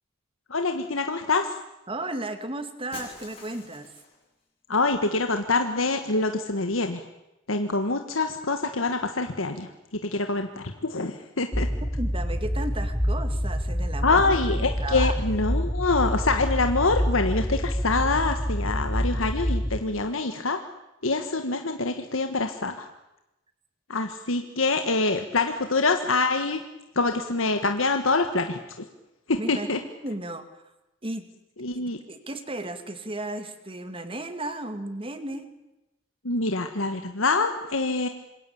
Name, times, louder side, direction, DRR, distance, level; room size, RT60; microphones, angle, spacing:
voice 1, 0.5-1.6 4.7-7.0 7.5-9.7 10.0-11.7 14.0-20.6 21.0-22.9 23.9-26.6 26.9-28.9 29.3-29.8 31.6-32.0 36.2-38.1, left 3 dB, 80° left, 6 dB, 1.6 m, -25 dB
voice 2, 1.9-3.9 12.0-15.1 29.4-29.7 30.0-30.4 31.0-31.2 32.1-35.5, right 2 dB, 25° right, 9 dB, 2.4 m, -34 dB
Shatter, 2.9-4.3, left 4 dB, 30° left, 7.7 m, -45 dB
sound 1, 11.5-19.8, equal, 5° left, 1.5 m, -27 dB
26.5 x 22.5 x 8.8 m, 0.96 s
head